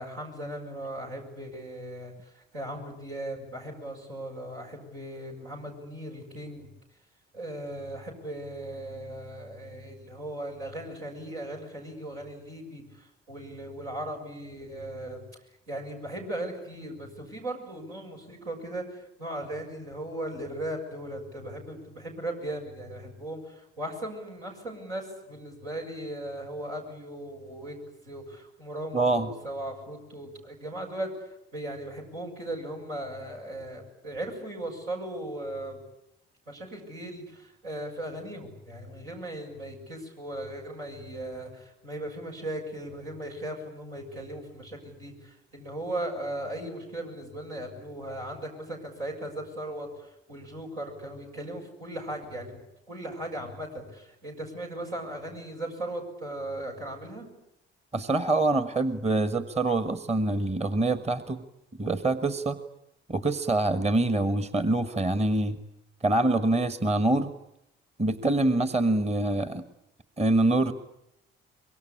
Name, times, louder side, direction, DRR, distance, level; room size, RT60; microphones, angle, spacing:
voice 1, 0.0-6.7 7.3-15.4 15.7-27.8 28.0-31.1 31.5-35.8 36.5-52.6 52.9-57.3, right 1 dB, 75° right, -1 dB, 6.7 m, -38 dB
voice 2, 28.9-29.3 57.9-61.4 61.8-62.6 63.1-65.6 66.0-67.3 68.0-69.6 70.2-70.7, right 2 dB, 20° right, 12 dB, 1.5 m, -25 dB
24.5 x 23.0 x 10.0 m, 0.81 s
figure-of-eight pair, 45°, 29 cm